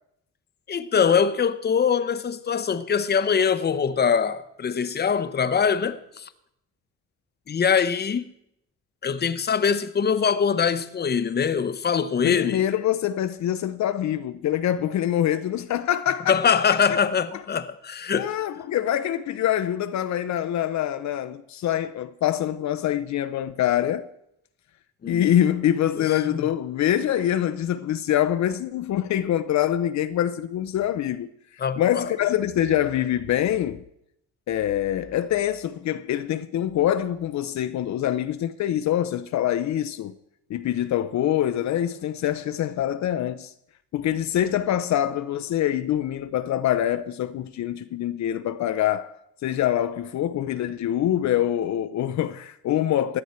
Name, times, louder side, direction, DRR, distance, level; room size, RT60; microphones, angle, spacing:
voice 1, 0.7-6.3 7.5-8.3 9.0-12.6 16.3-18.3 25.0-25.3 26.0-26.4 31.6-32.1, left 6 dB, 35° left, 0.8 m, -23 dB
voice 2, 12.2-16.6 17.3-17.4 18.2-24.1 25.1-31.3 31.8-33.8 34.5-40.1 40.5-43.5 43.9-49.1 49.4-53.2, left 11 dB, 65° left, 0.7 m, -25 dB
16.0 x 11.0 x 4.4 m
cardioid pair, 90°, 30 cm